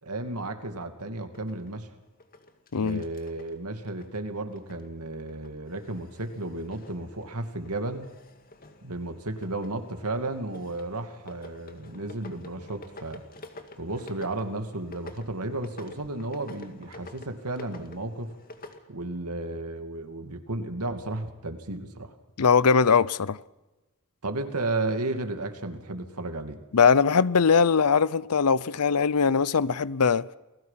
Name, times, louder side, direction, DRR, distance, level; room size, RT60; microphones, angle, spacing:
voice 1, 0.0-1.9 2.7-8.1 8.8-13.2 13.8-18.3 18.9-22.1 24.2-26.6, right 2 dB, 85° right, 2.5 m, -33 dB
sound 1, 1.3-4.9 5.2-18.8, left 2 dB, 40° left, 2.1 m, -49 dB
voice 2, 2.7-3.0 22.4-23.4 26.7-30.3, left 5 dB, 85° left, 0.7 m, -21 dB
29.0 x 20.0 x 5.8 m
head